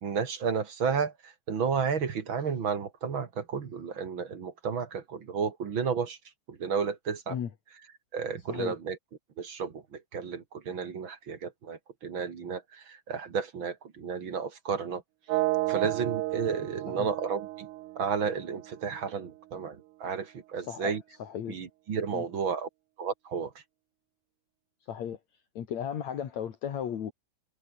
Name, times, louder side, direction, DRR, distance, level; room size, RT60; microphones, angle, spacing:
voice 1, 0.0-6.2 6.5-7.4 8.1-9.0 9.4-15.0 15.7-17.7 18.0-21.0 21.5-22.7 23.0-23.5, right 6 dB, 45° right, 2.4 m, -32 dB
sound 1, 15.3-19.2, right 18 dB, 85° right, 2.2 m, -32 dB
voice 2, 20.6-21.6 22.1-22.2 24.9-25.2 25.5-27.1, left 9 dB, 65° left, 3.2 m, -35 dB
omnidirectional pair, 3.5 m